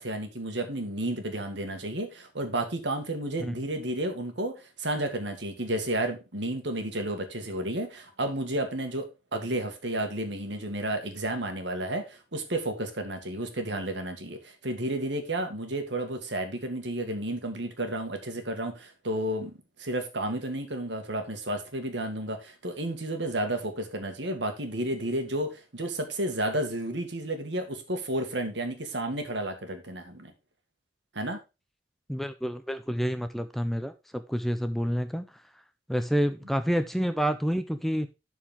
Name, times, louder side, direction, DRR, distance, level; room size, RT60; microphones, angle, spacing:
voice 1, 0.0-30.3 31.1-31.4, right 1 dB, 75° right, 1.8 m, -32 dB
voice 2, 32.1-35.3 35.9-38.1, equal, ahead, 0.5 m, -28 dB
11.5 x 4.6 x 3.7 m
head